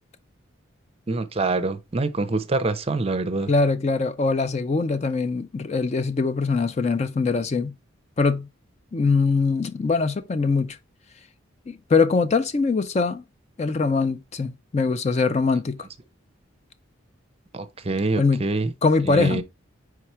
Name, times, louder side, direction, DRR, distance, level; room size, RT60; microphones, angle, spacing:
voice 1, 1.1-3.5 17.5-18.7 19.0-19.4, right 3 dB, 30° right, 0.6 m, -25 dB
voice 2, 3.5-7.7 8.2-8.5 8.9-10.8 11.7-13.2 13.6-15.8 18.2-18.4 18.8-19.4, left 4 dB, 35° left, 0.4 m, -22 dB
4.8 x 4.7 x 4.2 m
head